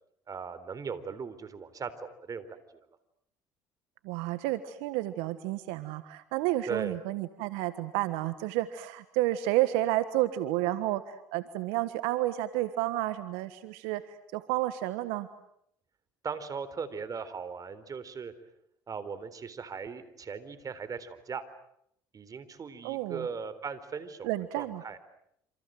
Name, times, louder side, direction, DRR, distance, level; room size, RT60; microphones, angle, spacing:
voice 1, 0.3-2.8 6.7-7.0 16.2-18.3 18.9-21.4 22.1-24.3 24.6-25.0, right 6 dB, 40° right, 14 dB, 3.9 m, -38 dB
voice 2, 4.0-15.3 22.8-23.3 24.2-24.8, right 15 dB, 80° right, 12 dB, 1.4 m, -31 dB
28.0 x 27.5 x 7.8 m, 0.74 s
supercardioid pair, 75°, 9 cm